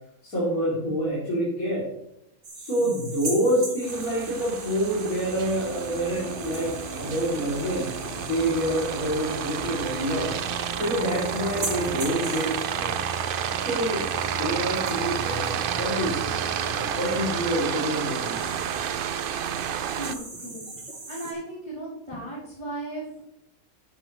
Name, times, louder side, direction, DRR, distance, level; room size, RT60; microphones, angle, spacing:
voice 1, 0.2-1.9 2.5-10.3 10.8-12.9 13.6-16.4 17.0-18.6, equal, 80° left, -7 dB, 3.5 m, -27 dB
sound 1, 2.4-21.3, right 2 dB, 60° right, 2.5 m, -40 dB
Aircraft, 3.8-20.1, right 9 dB, 75° right, 0.5 m, -31 dB
sound 2, 5.2-19.9, equal, 20° right, 2.2 m, -41 dB
voice 2, 19.9-20.7 21.1-23.2, right 1 dB, 20° left, -9 dB, 3.2 m, -36 dB
12.5 x 9.9 x 3.1 m, 0.82 s
omnidirectional pair, 1.5 m